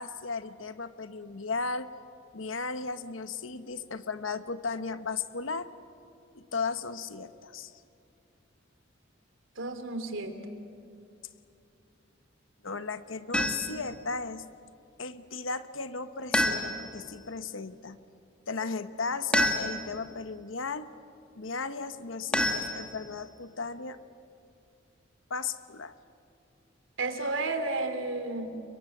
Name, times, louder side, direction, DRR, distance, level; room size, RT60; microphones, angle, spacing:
voice 1, 0.0-1.9 2.3-5.7 6.3-7.7 12.6-14.5 15.0-18.0 18.5-20.9 21.4-24.0 25.3-25.9, left 4 dB, 85° left, 11 dB, 1.1 m, -35 dB
voice 2, 9.6-10.4 27.0-28.6, right 2 dB, 80° right, 8 dB, 3.0 m, -32 dB
sound 1, 13.3-13.9 16.3-17.1 19.3-20.0 22.3-23.2, left 1 dB, 5° left, 2.2 m, -28 dB
30.0 x 24.0 x 8.0 m, 2.6 s
head